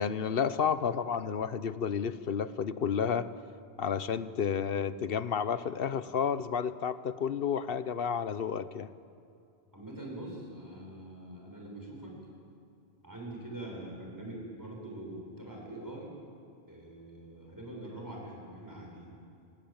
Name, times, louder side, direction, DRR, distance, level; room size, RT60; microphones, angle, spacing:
voice 1, 0.0-3.3 3.8-8.9, left 7 dB, 65° left, 14 dB, 1.1 m, -31 dB
voice 2, 9.7-12.1 13.0-16.2 16.7-19.1, right 1 dB, 20° right, -2 dB, 6.8 m, -43 dB
27.5 x 20.0 x 8.9 m, 2.6 s
omnidirectional pair, 1.1 m